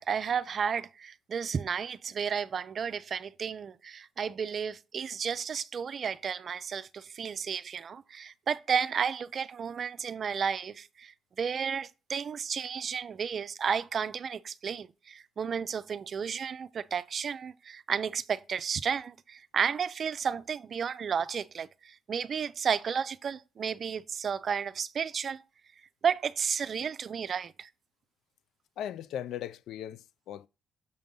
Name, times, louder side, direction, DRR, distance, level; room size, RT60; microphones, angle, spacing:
voice 1, 0.0-25.4 26.0-27.7, right 7 dB, 50° right, 0.5 m, -32 dB
voice 2, 28.8-30.5, left 10 dB, 80° left, 0.3 m, -38 dB
6.9 x 5.3 x 3.8 m
cardioid pair, 90°, 0 cm